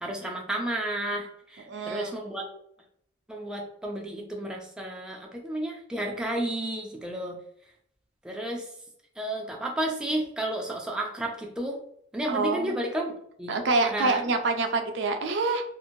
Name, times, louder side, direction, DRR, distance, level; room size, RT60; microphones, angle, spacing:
voice 1, 0.0-2.4 3.3-7.4 8.2-8.7 9.2-11.8 12.1-13.1 13.4-13.6 13.8-14.2, right 1 dB, 5° right, -1 dB, 0.3 m, -32 dB
voice 2, 1.7-2.2 12.3-12.7 13.5-15.6, right 3 dB, 65° right, 6 dB, 0.4 m, -26 dB
2.9 x 2.5 x 2.6 m, 0.68 s
head